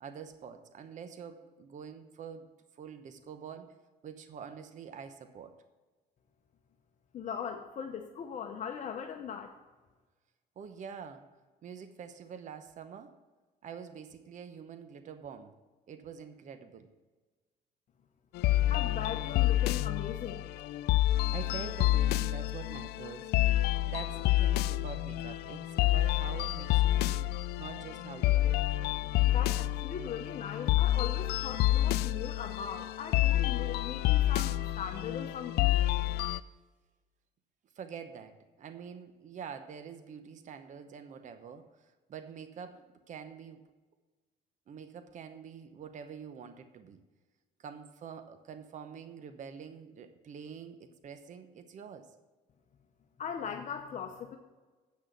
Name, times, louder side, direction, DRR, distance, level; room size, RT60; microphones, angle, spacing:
voice 1, 0.0-3.8 4.0-5.6 10.6-11.3 11.6-13.2 13.6-15.6 15.9-16.9 21.3-23.3 23.9-28.6 36.3-36.5 37.7-43.6 44.7-47.0 47.6-52.1, right 7 dB, 45° right, 9 dB, 0.9 m, -46 dB
voice 2, 7.1-9.5 18.7-20.5 29.2-35.8 53.2-54.4, left 7 dB, 45° left, 4 dB, 0.8 m, -39 dB
sound 1, 18.4-36.4, left 15 dB, 75° left, 0.4 m, -28 dB
8.4 x 6.2 x 6.8 m, 1.3 s
cardioid pair, 110°, 17 cm